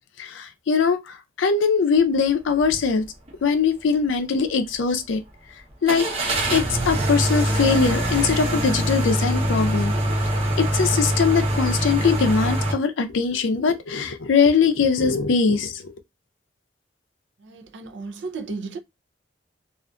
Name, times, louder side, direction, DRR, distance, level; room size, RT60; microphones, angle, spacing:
voice 1, 0.2-3.0 3.4-5.2 5.8-6.1 6.5-9.9 10.6-15.9, left 5 dB, 85° left, 0.4 m, -21 dB
sound 1, 2.6-2.8 3.3-3.4 5.9-12.7, right 1 dB, 35° right, 0.7 m, -23 dB
voice 2, 17.4-18.8, right 4 dB, 70° right, 0.5 m, -34 dB
2.4 x 2.4 x 2.2 m
head